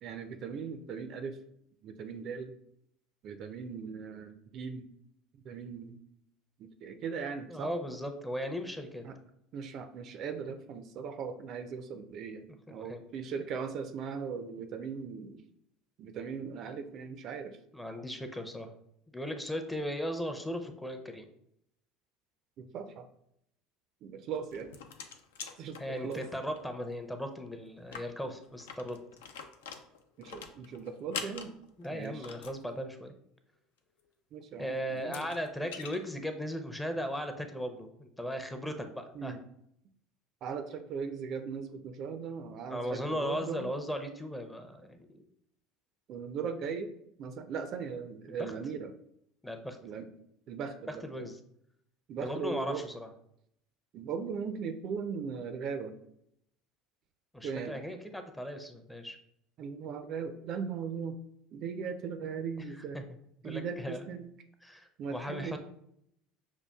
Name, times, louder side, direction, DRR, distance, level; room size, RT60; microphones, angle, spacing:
voice 1, 0.0-1.4 1.8-2.5 3.2-4.9 5.3-6.0 6.6-7.7 9.0-9.1 9.5-15.4 16.0-17.6 22.6-23.1 24.0-24.7 25.6-26.2 30.2-31.5 31.9-32.3 34.3-35.3 39.1-39.4 40.4-43.7 46.1-46.9 47.2-48.9 49.8-50.1 50.5-51.3 52.1-52.8 53.9-55.9 57.4-57.8 59.6-61.2 61.5-63.0 63.4-64.3 65.0-65.6, right 6 dB, 55° right, 8 dB, 0.3 m, -38 dB
voice 2, 7.5-9.0 12.7-13.0 17.7-18.7 19.1-21.3 25.8-29.0 31.8-33.1 34.6-39.3 42.7-45.2 48.3-48.5 49.4-49.8 50.9-51.4 52.2-53.1 57.3-59.2 62.6-63.0 63.4-64.1 64.6-65.6, equal, 5° left, 6 dB, 0.5 m, -37 dB
sound 1, 24.3-26.6 26.9-27.0 27.3-27.4 27.8-32.6 34.4-34.5 35.0-36.0, left 6 dB, 80° left, 0.3 m, -44 dB
5.4 x 2.3 x 2.2 m, 0.74 s
hypercardioid pair, 75°, 0 cm